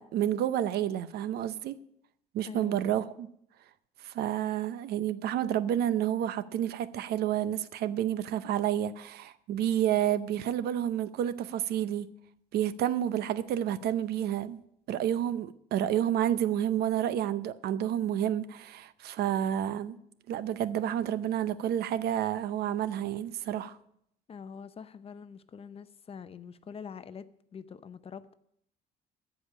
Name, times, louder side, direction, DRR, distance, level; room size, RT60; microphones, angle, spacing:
voice 1, 0.0-1.8 2.3-3.3 4.0-12.1 12.5-14.6 14.9-20.0 20.3-23.8, right 11 dB, 70° right, 0.7 m, -30 dB
voice 2, 2.5-2.8 24.3-28.3, left 6 dB, 35° left, 0.6 m, -45 dB
14.5 x 5.1 x 8.5 m
cardioid pair, 110°, 17 cm